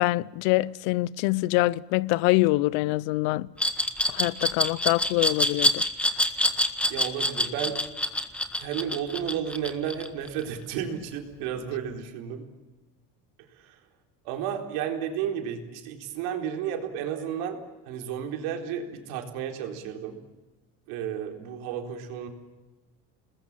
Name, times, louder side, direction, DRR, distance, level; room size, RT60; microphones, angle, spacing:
voice 1, 0.0-3.5 4.1-5.8, left 20 dB, 75° left, 0.7 m, -24 dB
Glass, 3.6-10.4, left 1 dB, 5° left, 1.6 m, -25 dB
voice 2, 6.9-7.8 8.6-12.4 13.6-13.8 14.2-17.6 17.9-20.2 20.9-22.3, right 9 dB, 80° right, 4.2 m, -32 dB
29.5 x 20.5 x 7.4 m
cardioid pair, 140°, 37 cm